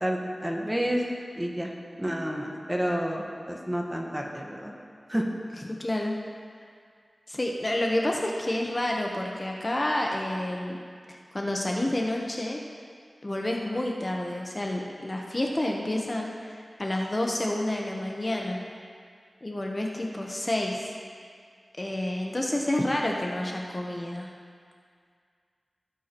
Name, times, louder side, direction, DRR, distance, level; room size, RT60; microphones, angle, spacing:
voice 1, 0.0-1.0 1.4-1.7 2.0-4.7 5.1-5.2, equal, 10° right, 0 dB, 1.4 m, -29 dB
voice 2, 5.8-6.1 7.3-10.8 11.1-12.6 13.2-18.6 19.4-20.9 21.8-24.3, left 1 dB, 30° left, 0 dB, 1.0 m, -29 dB
17.0 x 8.3 x 3.0 m, 2.1 s
wide cardioid pair, 55°, 0 cm